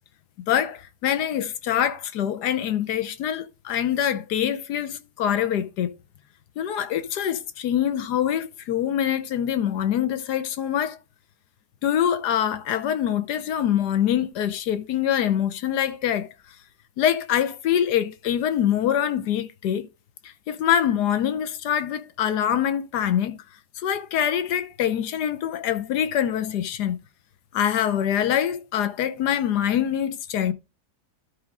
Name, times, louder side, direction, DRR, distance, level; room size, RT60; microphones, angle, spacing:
voice 1, 0.5-5.9 6.6-11.0 11.8-16.3 17.0-19.9 20.2-23.4 23.8-27.0 27.5-30.5, left 10 dB, 80° left, 1.4 m, -24 dB
12.0 x 5.1 x 3.7 m
omnidirectional pair, 1.7 m